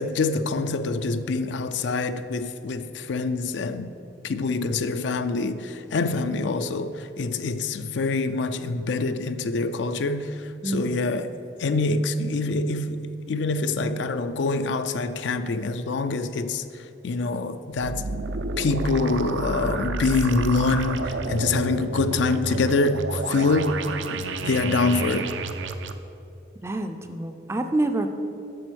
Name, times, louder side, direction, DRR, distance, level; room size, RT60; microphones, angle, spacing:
voice 1, 0.0-3.9 4.2-11.3 11.6-16.6 17.0-18.0 18.6-23.8 24.1-25.3, left 3 dB, 70° left, 0.4 m, -25 dB
voice 2, 10.6-11.0 26.6-28.1, right 2 dB, 15° right, 0.4 m, -27 dB
sound 1, 17.8-25.9, right 3 dB, 75° right, 0.5 m, -30 dB
8.7 x 6.0 x 6.2 m
head